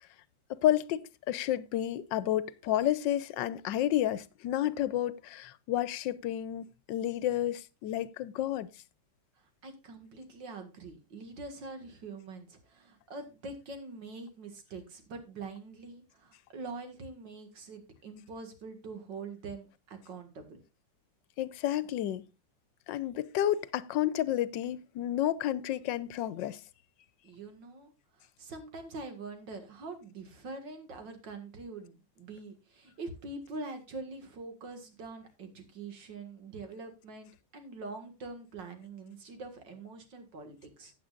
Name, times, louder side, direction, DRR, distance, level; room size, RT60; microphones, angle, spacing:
voice 1, 0.5-8.7 21.4-22.2 22.9-26.6, left 12 dB, 80° left, 1.3 m, -31 dB
voice 2, 9.4-20.6 27.2-27.9 28.2-40.9, right 3 dB, 80° right, 2.5 m, -44 dB
15.0 x 8.6 x 2.5 m
omnidirectional pair, 2.0 m